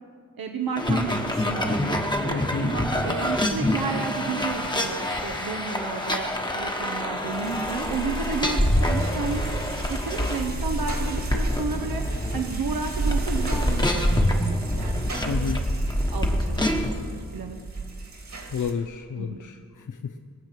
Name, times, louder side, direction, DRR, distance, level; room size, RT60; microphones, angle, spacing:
voice 1, 0.4-9.4 9.9-12.0 12.3-15.5 16.0-17.0 17.3-17.6 19.2-19.4, right 5 dB, 80° right, 3 dB, 1.0 m, -32 dB
sound 1, 0.8-17.0, left 1 dB, 10° left, 1.2 m, -26 dB
voice 2, 2.3-2.7 15.3-15.6 18.5-20.0, left 6 dB, 60° left, 6 dB, 0.7 m, -31 dB
sound 2, 7.1-18.7, right 3 dB, 50° right, 2.0 m, -36 dB
22.0 x 7.4 x 5.9 m, 2.1 s
wide cardioid pair, 125°, 35 cm